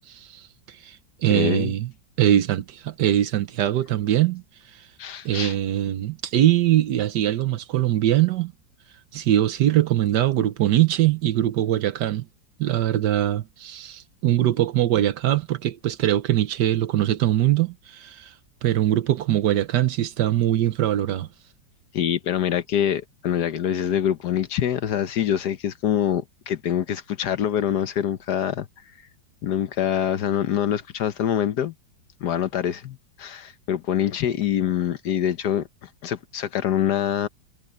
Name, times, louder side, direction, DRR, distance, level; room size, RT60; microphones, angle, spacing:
voice 1, 0.1-0.5 0.8-1.0 1.2-1.9 2.2-4.4 5.2-8.5 9.1-12.3 12.6-18.3 18.6-21.3, right 12 dB, 65° right, 1.3 m, -22 dB
voice 2, 1.3-1.7 5.0-5.6 21.9-28.7 29.4-31.7 32.2-37.3, left 10 dB, 65° left, 1.3 m, -25 dB
omnidirectional pair, 2.1 m